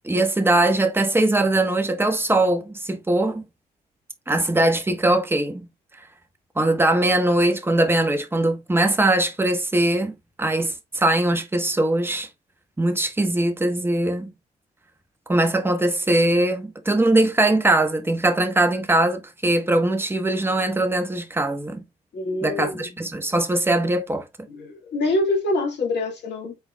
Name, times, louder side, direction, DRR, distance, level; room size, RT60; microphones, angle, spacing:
voice 1, 0.0-3.4 4.3-5.7 6.6-12.3 12.8-14.3 15.3-21.8 22.4-24.3, right 1 dB, 10° right, 1.1 m, -21 dB
voice 2, 22.1-22.8 24.5-26.6, left 2 dB, 60° left, 2.0 m, -25 dB
5.7 x 4.1 x 2.3 m
hypercardioid pair, 40°, 20 cm